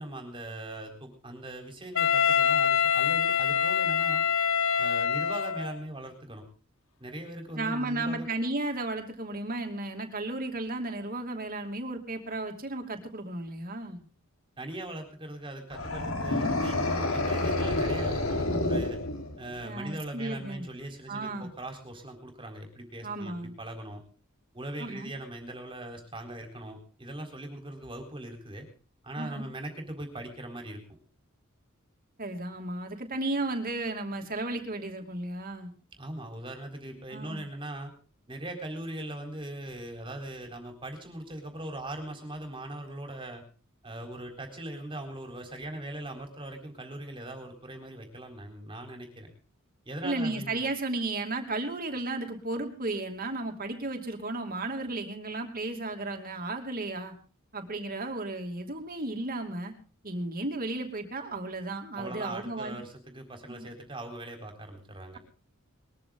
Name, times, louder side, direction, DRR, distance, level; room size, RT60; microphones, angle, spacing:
voice 1, 0.0-4.2 4.8-6.4 7.0-8.3 14.6-19.0 19.4-24.0 24.5-28.7 29.0-30.8 36.0-37.9 38.3-43.4 43.8-49.3 49.8-50.6 61.9-65.2, right 1 dB, 25° right, 4 dB, 4.1 m, -40 dB
Wind instrument woodwind instrument, 1.9-5.8, left 7 dB, 70° left, 0.8 m, -25 dB
voice 2, 7.5-14.0 19.6-20.7 21.1-21.5 23.0-23.5 24.8-25.1 29.2-29.5 32.2-35.7 37.1-37.5 50.0-57.1 57.5-59.7 60.0-62.8 63.5-63.7, right 2 dB, 45° right, 4 dB, 2.8 m, -34 dB
sound 1, 15.7-19.6, left 2 dB, 85° left, 4.1 m, -29 dB
21.5 x 14.0 x 3.9 m, 0.38 s
head